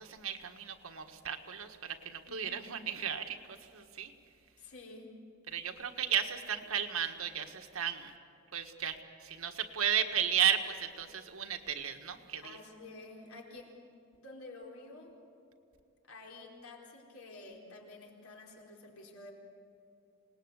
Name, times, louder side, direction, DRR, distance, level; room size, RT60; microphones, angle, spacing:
voice 1, 0.0-4.1 5.5-8.1 8.5-12.6, right 8 dB, 70° right, 6 dB, 1.6 m, -34 dB
voice 2, 2.2-2.8 4.6-5.1 12.4-13.7 14.1-15.1 16.0-19.3, left 2 dB, 75° left, 0 dB, 4.5 m, -50 dB
27.5 x 19.5 x 8.2 m, 2.6 s
head